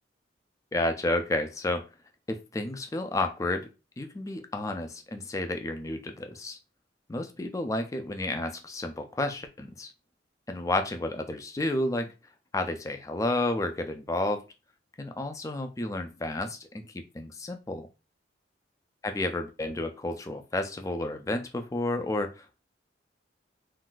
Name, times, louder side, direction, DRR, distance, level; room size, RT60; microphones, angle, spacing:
voice 1, 0.7-1.9 2.3-3.7 4.0-6.6 7.1-9.9 10.5-12.1 12.5-14.4 15.0-16.7 16.9-17.9 19.0-22.6, left 2 dB, 15° left, 0.3 m, -31 dB
2.6 x 2.3 x 3.7 m
head